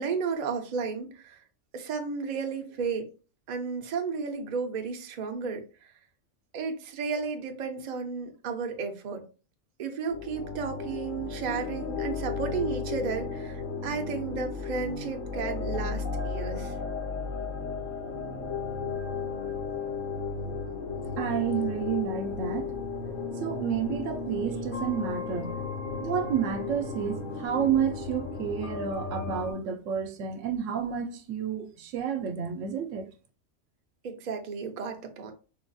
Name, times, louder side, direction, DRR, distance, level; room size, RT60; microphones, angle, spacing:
voice 1, 0.0-1.4 1.7-3.1 3.5-5.6 6.5-9.2 9.8-16.7 34.0-35.3, right 5 dB, 50° right, 0.5 m, -33 dB
sound 1, 10.1-29.5, left 4 dB, 45° left, 0.9 m, -34 dB
voice 2, 21.1-22.7 23.4-25.6 26.0-33.1, right 8 dB, 80° right, 0.9 m, -30 dB
4.3 x 2.3 x 2.5 m
omnidirectional pair, 1.3 m